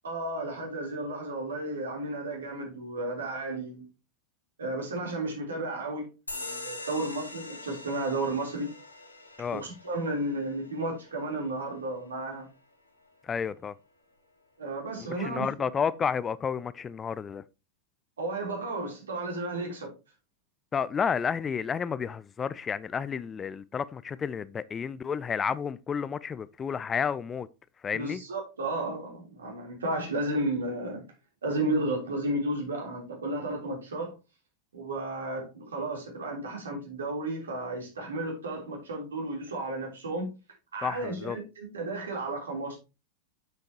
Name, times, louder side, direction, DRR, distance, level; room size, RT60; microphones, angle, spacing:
voice 1, 0.0-3.8 4.6-8.7 9.5-12.5 14.6-15.5 18.2-19.9 27.9-31.0 31.4-34.1 34.7-40.3 40.7-42.8, right 2 dB, 70° right, 3.4 m, -33 dB
sound 1, 6.3-13.3, left 2 dB, 85° left, 1.6 m, -44 dB
voice 2, 13.2-13.7 15.2-17.4 20.7-27.5 27.8-28.2 40.8-41.4, left 6 dB, 20° left, 0.4 m, -31 dB
8.8 x 7.6 x 2.9 m
figure-of-eight pair, 85°, 0 cm